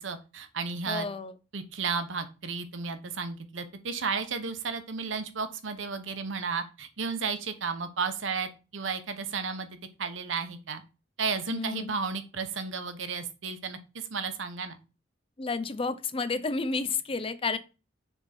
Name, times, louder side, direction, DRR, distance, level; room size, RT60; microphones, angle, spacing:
voice 1, 0.0-1.1 1.5-9.7 10.0-10.8 11.2-14.8, right 5 dB, 90° right, 0.9 m, -33 dB
voice 2, 0.9-1.3 11.5-11.9 15.4-17.6, left 4 dB, 30° left, 0.6 m, -31 dB
6.8 x 3.6 x 4.3 m
head